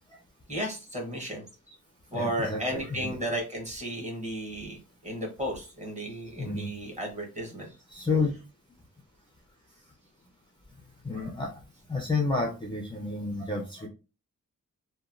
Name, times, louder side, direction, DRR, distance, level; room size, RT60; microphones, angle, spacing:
voice 1, 0.5-1.7 2.1-7.7, right 1 dB, 20° right, 1 dB, 0.9 m, -34 dB
voice 2, 2.1-3.2 6.4-6.7 7.9-8.3 11.0-11.5 11.9-13.9, left 3 dB, 15° left, 0 dB, 0.4 m, -30 dB
2.9 x 2.1 x 2.4 m, 0.31 s
wide cardioid pair, 170°, 31 cm